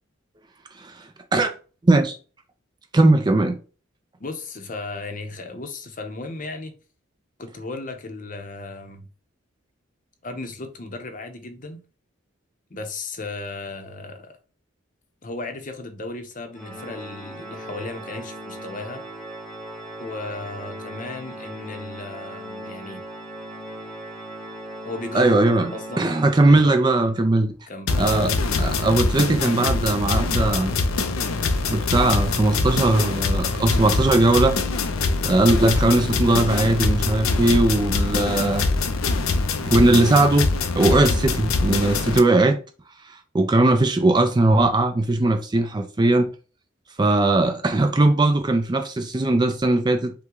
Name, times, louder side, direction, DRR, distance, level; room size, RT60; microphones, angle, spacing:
voice 1, 0.8-1.5 1.8-2.2 2.9-3.6 25.1-25.7 26.0-27.5 28.0-30.8 31.7-34.6 35.2-38.7 39.6-40.5 40.8-42.6 43.1-46.3 47.0-50.1, right 2 dB, 20° right, 0.4 m, -19 dB
voice 2, 4.2-6.7 7.4-9.1 10.2-11.8 12.7-14.4 15.2-19.0 20.0-23.0 24.8-25.4 25.7-26.1 26.5-26.7 27.7-27.9, left 3 dB, 40° left, 0.7 m, -35 dB
Organ, 16.5-27.3, right 1 dB, 5° left, 0.9 m, -38 dB
sound 1, 27.9-42.2, left 3 dB, 90° left, 0.6 m, -23 dB
5.6 x 2.2 x 3.8 m
head